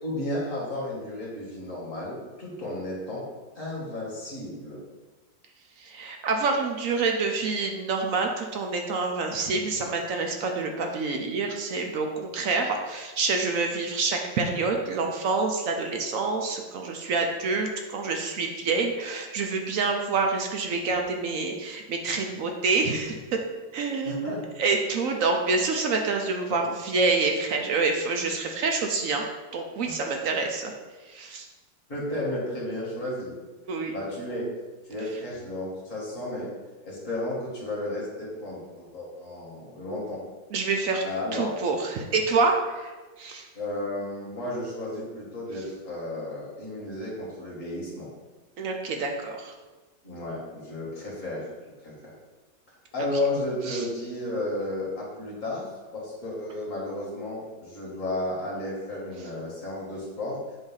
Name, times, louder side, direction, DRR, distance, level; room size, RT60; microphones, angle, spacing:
voice 1, 0.0-3.2 3.6-4.8 24.0-24.4 26.5-26.6 30.2-30.3 31.9-33.3 33.9-34.5 34.9-36.5 36.8-40.2 41.0-41.5 43.6-48.1 50.0-52.1 52.9-60.4, left 1 dB, 45° left, -5 dB, 2.2 m, -33 dB
voice 2, 5.8-23.4 23.7-29.2 29.5-30.7 31.1-31.5 33.7-33.9 40.5-41.0 41.3-42.9 43.2-43.5 48.6-49.5 53.7-53.9, right 4 dB, 65° right, 3 dB, 0.9 m, -27 dB
7.1 x 2.7 x 5.6 m, 1.2 s
omnidirectional pair, 1.9 m